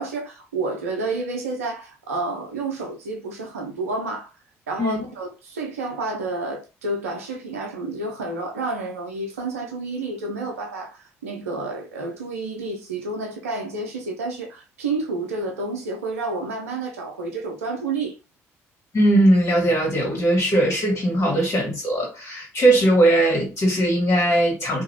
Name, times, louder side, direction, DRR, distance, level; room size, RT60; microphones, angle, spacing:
voice 1, 0.0-4.3 4.7-18.2, right 3 dB, 85° right, 0.6 m, -30 dB
voice 2, 18.9-24.8, right 1 dB, 35° left, 1.8 m, -19 dB
2.8 x 2.6 x 2.9 m
hypercardioid pair, 50°, 8 cm